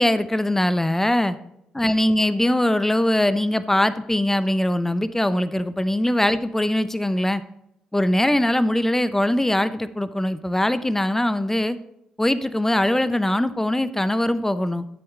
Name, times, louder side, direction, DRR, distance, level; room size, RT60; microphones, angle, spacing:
voice 1, 0.0-1.4 1.7-7.4 7.9-11.8 12.2-14.8, left 1 dB, 10° left, 13 dB, 0.7 m, -21 dB
13.0 x 7.8 x 3.2 m, 0.80 s
figure-of-eight pair, 40°, 4 cm